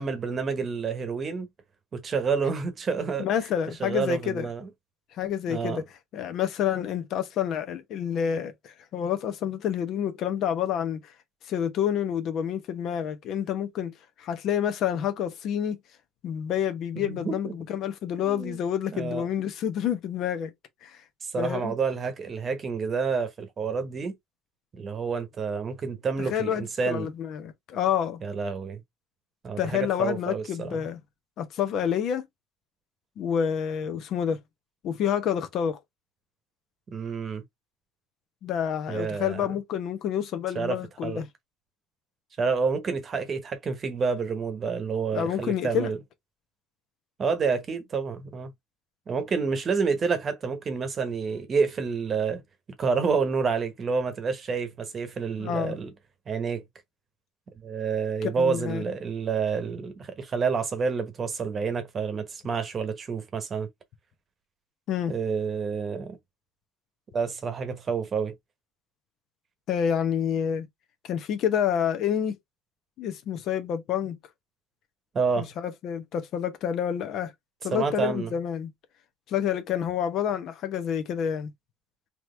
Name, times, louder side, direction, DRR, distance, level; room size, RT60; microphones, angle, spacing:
voice 1, 0.0-1.5 1.9-3.3 3.7-4.7 5.5-5.8 17.0-17.5 18.2-18.6 18.9-19.3 21.2-24.1 24.7-27.1 28.2-28.8 29.4-30.8 36.9-37.4 38.9-39.5 40.5-41.2 42.4-46.0 47.2-48.5 49.1-52.4 52.8-55.9 56.3-56.6 57.6-63.7 65.1-66.2 67.1-68.3 75.1-75.5 77.7-78.3, right 5 dB, 30° right, 1.1 m, -29 dB
voice 2, 3.2-4.5 5.2-5.8 6.1-11.1 11.5-15.8 16.2-20.5 20.8-21.0 21.4-21.7 26.2-28.2 29.6-31.0 31.4-32.3 33.2-34.4 34.8-35.8 38.4-41.3 45.1-45.9 55.4-55.8 58.2-58.8 64.9-65.1 69.7-70.7 71.1-72.3 73.0-74.2 75.4-77.3 77.6-78.7 79.3-81.5, left 9 dB, 50° left, 0.9 m, -28 dB
4.0 x 3.0 x 3.2 m
cardioid pair, 150°, 0 cm